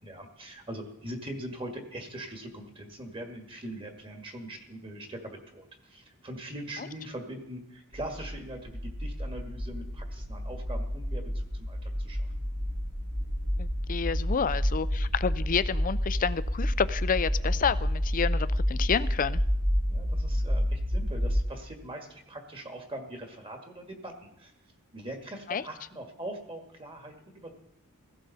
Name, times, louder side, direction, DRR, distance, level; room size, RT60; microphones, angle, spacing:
voice 1, 0.0-12.2 19.8-24.5 24.9-27.5, right 1 dB, 25° right, 3 dB, 1.9 m, -42 dB
sound 1, 7.9-21.4, equal, 80° right, 5.2 m, -29 dB
voice 2, 13.6-19.4 25.5-25.6, left 6 dB, 35° left, 15 dB, 0.5 m, -29 dB
16.5 x 15.5 x 4.1 m, 0.80 s
head